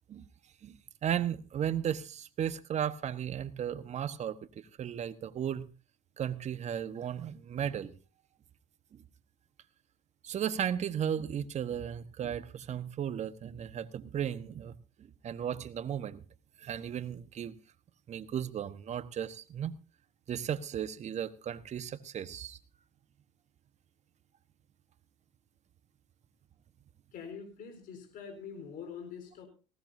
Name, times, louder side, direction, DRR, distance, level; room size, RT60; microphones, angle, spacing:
voice 1, 1.0-4.4 4.8-5.7 6.2-7.9 10.2-16.2 16.6-17.5 18.1-19.7 20.3-22.6, right 9 dB, 40° right, 12 dB, 1.2 m, -35 dB
voice 2, 27.1-29.5, left 6 dB, 55° left, 6 dB, 4.1 m, -44 dB
19.0 x 16.5 x 2.7 m, 0.34 s
supercardioid pair, 85°, 17 cm